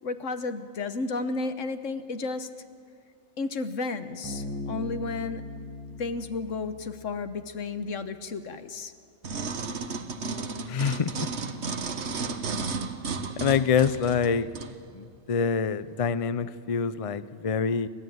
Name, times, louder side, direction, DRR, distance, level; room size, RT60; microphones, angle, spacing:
voice 1, 0.0-2.5 3.4-5.4 6.0-8.9, left 3 dB, 70° left, 10 dB, 1.5 m, -32 dB
Bass guitar, 4.2-7.7, left 2 dB, 15° left, 5.0 m, -39 dB
sound 1, 9.2-14.7 15.3-15.4, right 4 dB, 60° right, 1.5 m, -33 dB
voice 2, 10.7-11.3 13.4-14.5 14.9-17.9, left 6 dB, 40° left, 14 dB, 0.5 m, -26 dB
30.0 x 13.0 x 9.4 m, 2.1 s
omnidirectional pair, 1.3 m